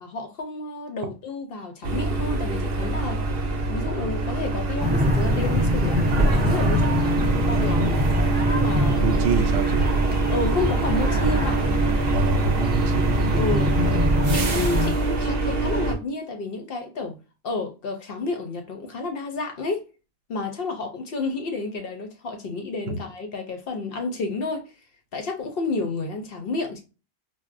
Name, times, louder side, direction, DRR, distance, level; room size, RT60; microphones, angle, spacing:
voice 1, 0.0-3.4 3.7-8.0 8.5-9.1 10.3-11.6 13.4-13.7 14.3-17.2 17.4-19.9 20.3-24.7 25.1-26.8, left 3 dB, 60° left, 0.7 m, -30 dB
sound 1, 1.8-15.9, right 2 dB, 60° right, 0.8 m, -25 dB
sound 2, 4.8-14.9, equal, 15° right, 0.3 m, -24 dB
voice 2, 9.0-9.9 12.1-13.6 22.9-23.0, right 5 dB, 85° right, 1.0 m, -27 dB
4.0 x 2.1 x 2.4 m
omnidirectional pair, 1.3 m